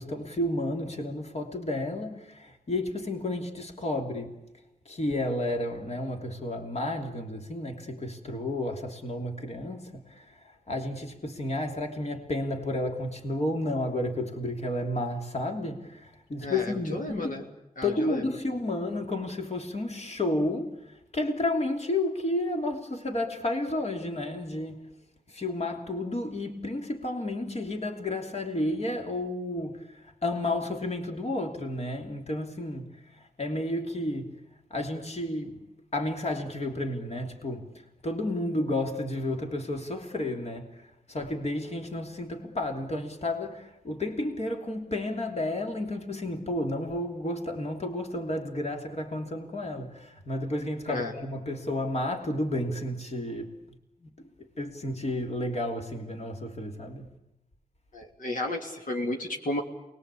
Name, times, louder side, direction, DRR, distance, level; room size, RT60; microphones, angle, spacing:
voice 1, 0.0-4.4 4.8-17.4 17.8-24.8 25.3-34.4 34.7-35.6 35.9-37.7 38.0-53.6 54.0-54.1 54.4-57.1, left 1 dB, 45° left, 3.2 m, -32 dB
voice 2, 16.4-17.5 17.8-18.2 50.9-51.1 57.9-59.6, left 1 dB, 60° left, 2.9 m, -33 dB
28.5 x 21.0 x 8.5 m
wide cardioid pair, 120°, 15 cm